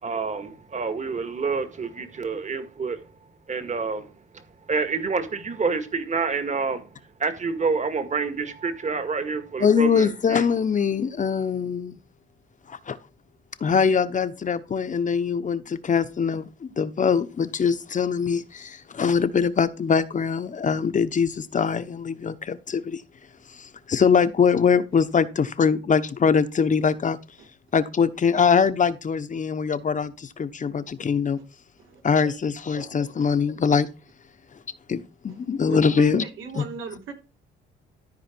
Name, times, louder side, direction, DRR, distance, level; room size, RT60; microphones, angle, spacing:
voice 1, 0.0-3.0 3.5-4.4 4.7-6.9 7.2-10.5, right 4 dB, 35° right, 2.0 m, -28 dB
voice 2, 9.6-12.0 12.7-13.0 13.6-23.0 23.5-27.2 27.7-31.4 32.0-33.9 34.9-36.2 36.6-36.7, left 6 dB, 40° left, 1.0 m, -23 dB
voice 3, 32.7-33.1 35.3-35.4 35.7-37.1, right 5 dB, 80° right, 3.5 m, -37 dB
13.5 x 4.8 x 4.5 m
cardioid pair, 90°, 20 cm